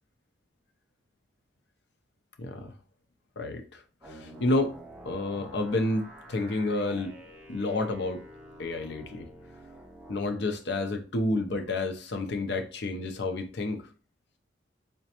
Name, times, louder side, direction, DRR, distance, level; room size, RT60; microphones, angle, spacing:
voice 1, 2.4-2.7 3.4-4.7 5.0-7.1 7.5-8.2 8.6-9.3 10.1-13.8, left 2 dB, 60° left, 6 dB, 0.5 m, -30 dB
sound 1, 4.0-10.3, right 1 dB, 5° right, 0.5 m, -48 dB
5.0 x 2.2 x 2.8 m, 0.37 s
head